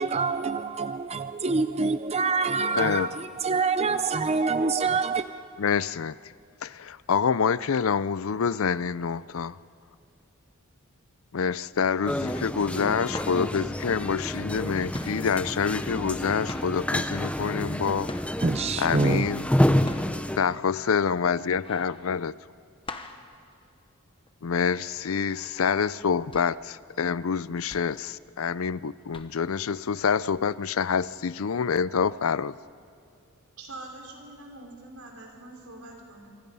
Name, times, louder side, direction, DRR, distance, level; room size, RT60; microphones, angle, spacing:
voice 1, 0.0-5.3 18.4-19.3, right 4 dB, 30° right, 0.5 m, -26 dB
voice 2, 2.8-3.1 5.6-6.2 6.6-9.6 11.3-18.1 18.8-19.5 20.4-22.3 24.4-32.5, left 6 dB, 75° left, 0.5 m, -27 dB
sound 1, 12.0-20.4, equal, 5° left, 0.7 m, -28 dB
sound 2, 13.1-14.6 14.9-18.6 19.1-24.4 24.7-24.8 25.2-25.4 26.0-28.8 29.1-29.6 30.3-30.4, left 2 dB, 25° left, 1.1 m, -42 dB
voice 3, 33.6-36.4, right 2 dB, 90° right, 4.9 m, -44 dB
26.0 x 25.0 x 5.6 m
head